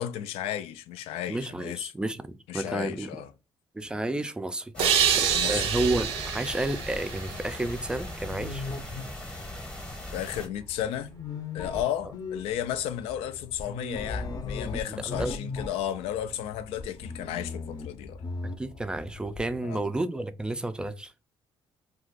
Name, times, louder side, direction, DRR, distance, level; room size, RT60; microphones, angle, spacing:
voice 1, 0.0-1.9 2.5-3.3 4.8-5.0 5.3-5.7 10.1-11.1 11.5-18.2 19.6-19.8, left 11 dB, 85° left, 0.4 m, -33 dB
voice 2, 1.3-3.1 3.7-4.9 5.5-8.6 15.1-15.4 18.4-21.1, right 2 dB, 10° right, 0.3 m, -31 dB
sound 1, 4.7-10.5, left 1 dB, 10° left, 0.8 m, -40 dB
sound 2, 4.8-8.3, right 8 dB, 85° right, 0.5 m, -27 dB
sound 3, 5.0-19.6, left 3 dB, 40° left, 0.6 m, -39 dB
2.5 x 2.3 x 3.8 m
cardioid pair, 90°, 10 cm